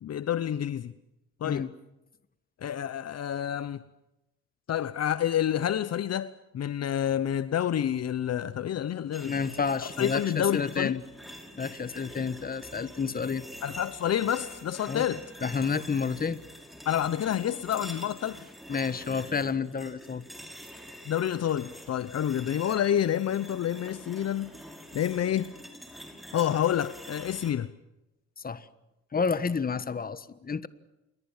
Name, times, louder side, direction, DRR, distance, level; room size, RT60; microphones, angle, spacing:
voice 1, 0.0-0.9 1.4-1.7 2.6-3.8 4.7-9.4 9.8-10.9 13.6-15.3 16.8-18.5 21.0-24.6 24.9-25.5 26.3-27.7, left 10 dB, 55° left, 1.0 m, -28 dB
sound 1, 9.1-27.5, equal, ahead, 5.6 m, -46 dB
voice 2, 9.2-11.0 11.6-13.4 14.9-15.0 15.4-16.4 18.7-20.2 28.4-28.7 29.1-30.7, left 5 dB, 30° left, 1.5 m, -30 dB
28.0 x 22.5 x 7.4 m
cardioid pair, 90°, 30 cm